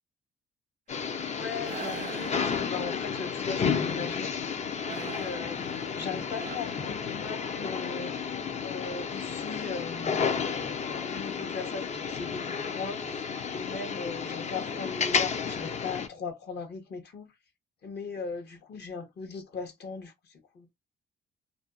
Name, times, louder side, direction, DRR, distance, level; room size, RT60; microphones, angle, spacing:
sound 1, 0.9-16.1, left 6 dB, 35° left, 0.5 m, -32 dB
voice 1, 1.3-4.6 5.0-8.3 8.6-10.3 11.0-17.3 17.8-20.7, left 5 dB, 55° left, 0.9 m, -39 dB
sound 2, 1.6-3.2 4.9-7.5, right 8 dB, 40° right, 0.4 m, -44 dB
2.5 x 2.2 x 2.4 m
cardioid pair, 90°, 20 cm